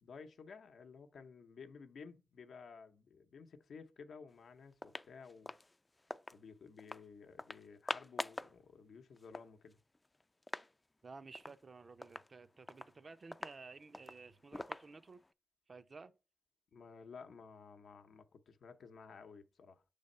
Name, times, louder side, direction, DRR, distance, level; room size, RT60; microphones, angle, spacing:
voice 1, 0.0-5.5 6.3-9.8 16.7-19.8, left 5 dB, 85° left, 0.6 m, -54 dB
sound 1, 4.3-4.4 4.7-6.4 6.8-7.0 7.4-8.6 8.9-9.0 9.2-10.7 11.0-11.1 11.3-11.6 12.0-15.3, left 2 dB, 25° left, 0.3 m, -46 dB
voice 2, 11.0-15.2 15.7-16.1, right 4 dB, 55° right, 0.5 m, -54 dB
6.5 x 3.4 x 5.3 m
cardioid pair, 55°, 0 cm